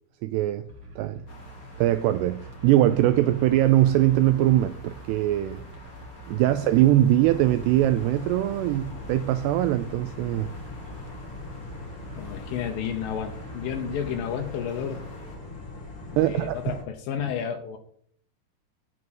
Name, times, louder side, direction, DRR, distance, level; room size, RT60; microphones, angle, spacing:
voice 1, 0.2-0.6 1.0-1.2 1.8-5.6 6.3-10.5 16.2-16.8, right 14 dB, 85° right, 2.4 m, -22 dB
sound 1, 0.7-14.1, right 1 dB, 55° right, 1.3 m, -45 dB
sound 2, 1.3-15.4, left 1 dB, 60° left, 0.9 m, -49 dB
sound 3, 7.3-16.8, left 3 dB, 30° left, 2.6 m, -41 dB
voice 2, 12.2-15.1 16.1-17.8, left 8 dB, 80° left, 2.0 m, -31 dB
7.7 x 7.6 x 7.8 m
omnidirectional pair, 5.2 m